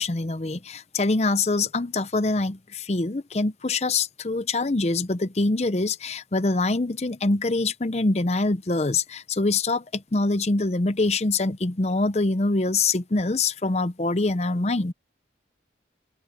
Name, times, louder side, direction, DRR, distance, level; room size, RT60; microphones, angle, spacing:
voice 1, 0.0-14.9, left 3 dB, 35° left, 0.7 m, -24 dB
open air
head